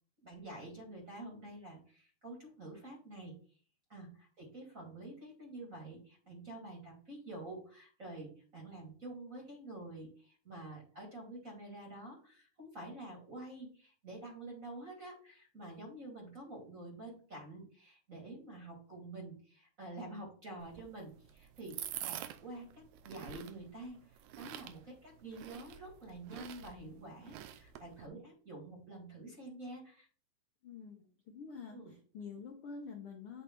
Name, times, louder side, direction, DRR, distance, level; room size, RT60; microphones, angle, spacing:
voice 1, 0.2-3.4 3.9-30.1 31.7-31.9, right 2 dB, 30° right, -1 dB, 1.9 m, -48 dB
sound 1, 20.6-28.1, right 11 dB, 80° right, 1.8 m, -47 dB
voice 2, 30.6-33.4, left 5 dB, 65° left, 1 dB, 1.4 m, -48 dB
8.2 x 3.3 x 4.5 m, 0.42 s
omnidirectional pair, 3.6 m